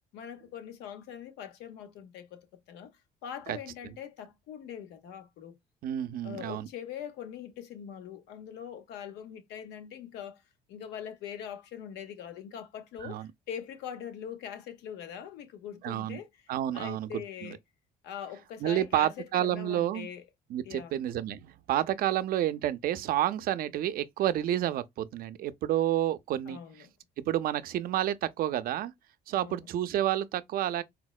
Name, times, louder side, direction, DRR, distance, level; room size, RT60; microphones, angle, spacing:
voice 1, 0.1-2.9 3.2-5.6 6.2-10.4 10.7-16.3 16.7-17.6 18.0-20.3 20.6-21.0 26.5-26.9 29.3-29.7, left 9 dB, 85° left, 0.7 m, -42 dB
voice 2, 5.8-6.7 13.0-13.3 15.8-16.2 16.5-17.6 18.6-20.1 20.5-26.6 27.2-28.9 29.3-30.8, right 12 dB, 60° right, 0.4 m, -30 dB
4.3 x 2.0 x 2.2 m
cardioid pair, 110°, 17 cm